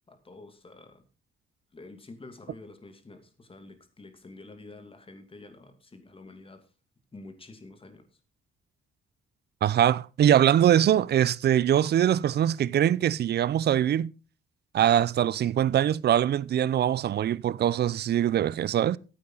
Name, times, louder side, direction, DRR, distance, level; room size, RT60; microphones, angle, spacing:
voice 1, 0.1-1.0 1.7-6.7 7.1-8.1, left 2 dB, 25° left, 2.7 m, -48 dB
voice 2, 9.6-14.1 14.7-19.0, right 10 dB, 55° right, 0.6 m, -23 dB
14.0 x 8.7 x 3.9 m
cardioid pair, 90°, 20 cm